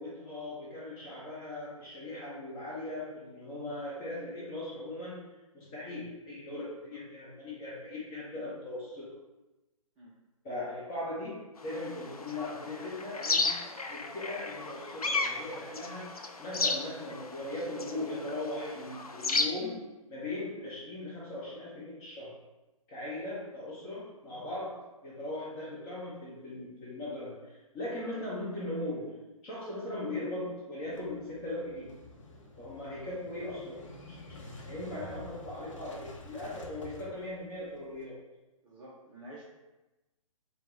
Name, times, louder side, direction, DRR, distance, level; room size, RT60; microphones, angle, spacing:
voice 1, 0.0-5.2 5.5-9.1 10.4-19.8 20.1-22.4 22.9-31.9 32.6-38.2, left 1 dB, 20° left, -7 dB, 0.9 m, -39 dB
sound 1, 11.6-19.5, left 3 dB, 85° left, 0.5 m, -34 dB
Motorcycle / Engine starting, 30.8-38.0, left 1 dB, 60° left, 0.9 m, -49 dB
voice 2, 38.6-39.4, right 1 dB, 10° right, -7 dB, 0.5 m, -49 dB
4.6 x 2.3 x 3.6 m, 1.0 s
figure-of-eight pair, 130°, 18 cm